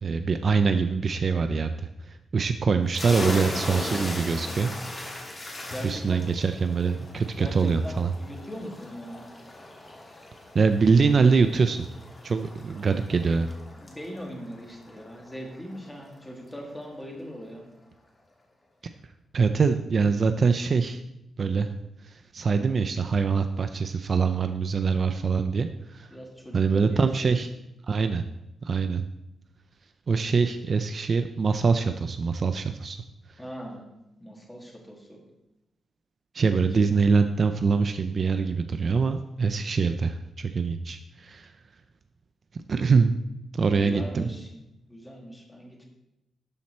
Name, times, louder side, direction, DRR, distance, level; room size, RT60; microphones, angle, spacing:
voice 1, 0.0-4.7 5.8-8.1 10.5-11.8 12.2-13.5 18.8-18.9 19.3-21.0 21.4-21.7 22.0-26.1 26.5-27.5 27.9-28.2 28.6-29.0 30.1-33.0 36.3-41.5 42.7-43.2 43.5-44.3, right 5 dB, 40° right, 8 dB, 0.4 m, -24 dB
sound 1, 2.9-16.3, left 1 dB, 25° left, 1.5 m, -38 dB
voice 2, 5.6-6.2 7.1-9.3 13.7-17.7 26.1-27.3 33.4-33.9 34.2-35.2 43.7-44.5 44.9-45.9, equal, 10° left, 0 dB, 1.7 m, -40 dB
12.5 x 4.3 x 4.2 m, 0.90 s
wide cardioid pair, 145°, 0 cm